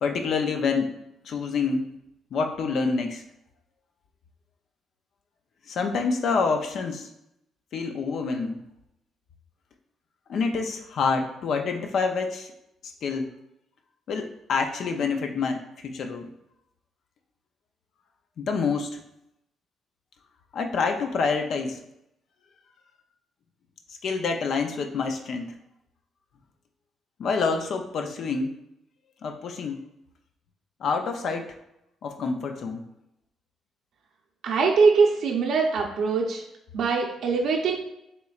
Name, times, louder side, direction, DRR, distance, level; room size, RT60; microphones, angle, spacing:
voice 1, 0.0-1.0 1.2-1.9 2.3-3.2 5.7-7.1 7.7-8.6 10.3-12.5 12.8-13.3 14.1-16.3 18.4-19.0 20.5-21.8 23.9-25.5 27.2-28.5 29.2-29.8 30.8-31.5 32.0-32.8, left 4 dB, 65° left, 5 dB, 0.5 m, -27 dB
voice 2, 34.4-36.4 36.7-37.8, right 5 dB, 75° right, 0 dB, 0.6 m, -22 dB
5.9 x 3.1 x 2.4 m, 0.83 s
cardioid pair, 90°, 0 cm